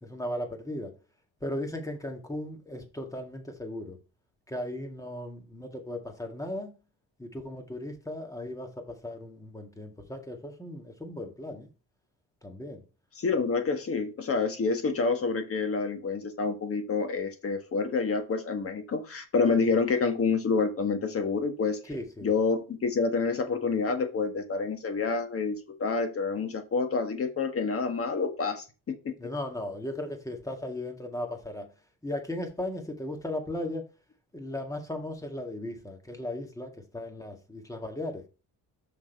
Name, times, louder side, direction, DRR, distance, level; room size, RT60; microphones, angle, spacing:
voice 1, 0.0-1.0 1.4-4.0 4.5-6.7 7.2-11.7 12.4-12.8 21.9-22.3 29.2-31.7 32.0-33.9 34.3-38.3, left 1 dB, 10° left, 1.9 m, -36 dB
voice 2, 13.2-21.8 22.2-29.1, left 4 dB, 40° left, 1.5 m, -28 dB
6.3 x 5.9 x 4.6 m
cardioid pair, 120°, 36 cm